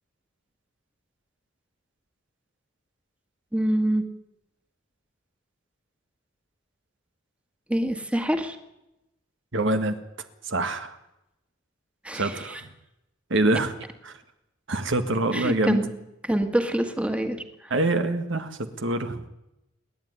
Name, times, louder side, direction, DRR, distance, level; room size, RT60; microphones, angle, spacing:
voice 1, 3.5-4.0 7.7-8.6 12.0-12.6 15.3-15.9 16.2-17.4 17.6-17.7, right 1 dB, 5° right, 6 dB, 1.9 m, -25 dB
voice 2, 9.5-10.0 10.5-11.0 12.1-12.6 13.3-13.8 14.0-14.1 14.7-15.8 17.7-19.3, right 2 dB, 70° right, 8 dB, 1.8 m, -25 dB
28.5 x 11.5 x 9.6 m, 0.89 s
head